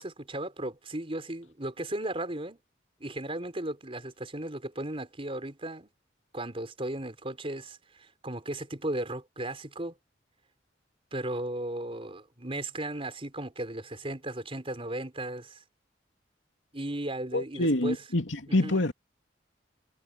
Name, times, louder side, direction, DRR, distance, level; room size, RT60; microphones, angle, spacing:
voice 1, 0.0-2.6 3.0-5.9 6.3-9.9 11.1-15.6 16.7-18.0 18.5-18.8, right 1 dB, 30° right, 4.5 m, -36 dB
voice 2, 17.3-18.9, left 1 dB, 80° left, 2.6 m, -26 dB
head